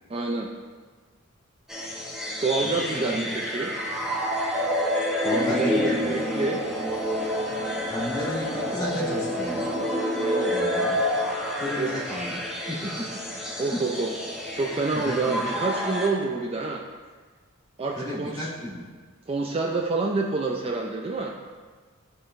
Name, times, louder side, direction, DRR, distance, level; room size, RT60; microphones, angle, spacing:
voice 1, 0.1-0.5 2.4-3.7 5.3-6.6 10.2-10.6 11.8-12.2 13.6-14.1 14.5-16.8 17.8-18.4 19.3-21.3, right 3 dB, 30° right, 1 dB, 0.4 m, -28 dB
sound 1, 1.7-16.1, equal, ahead, 0.8 m, -28 dB
voice 2, 2.6-3.2 5.2-6.0 7.9-9.7 10.5-11.0 11.6-13.1 13.7-13.8 14.9-15.4 17.9-18.8, left 1 dB, 20° left, -8 dB, 1.7 m, -33 dB
11.5 x 3.9 x 2.5 m, 1.5 s
head